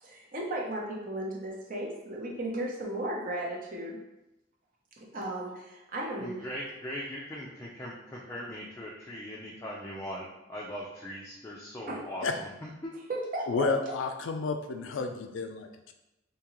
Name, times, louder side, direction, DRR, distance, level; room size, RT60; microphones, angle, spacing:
voice 1, 0.0-4.0 5.0-6.5 11.9-12.0 13.1-13.7, right 1 dB, 45° right, -2 dB, 0.8 m, -35 dB
voice 2, 6.2-12.9, equal, 15° left, -4 dB, 0.4 m, -40 dB
voice 3, 13.5-15.9, left 4 dB, 90° left, 6 dB, 0.4 m, -31 dB
3.6 x 2.8 x 3.0 m, 0.93 s
head